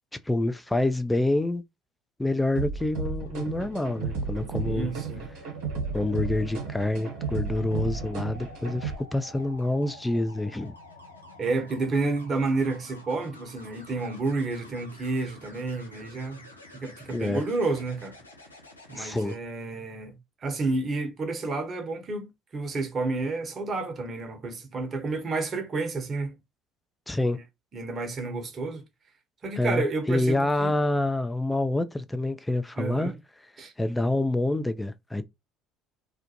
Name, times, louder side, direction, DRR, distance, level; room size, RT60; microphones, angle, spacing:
voice 1, 0.3-1.6 2.2-4.9 5.9-10.7 17.1-17.4 19.0-19.3 27.1-27.4 29.6-33.1 33.8-35.2, left 2 dB, 10° left, 0.4 m, -27 dB
sound 1, 2.6-9.0, right 4 dB, 65° right, 1.1 m, -33 dB
sound 2, 3.3-19.4 21.3-21.5, left 1 dB, 85° left, 0.5 m, -49 dB
voice 2, 4.6-5.2 11.4-16.4 16.7-18.2 18.9-26.3 27.3-27.4 27.7-28.8 29.4-30.7 32.8-33.2 33.6-33.7, right 3 dB, 35° right, 0.8 m, -30 dB
2.4 x 2.1 x 2.8 m
figure-of-eight pair, 60°, 0 cm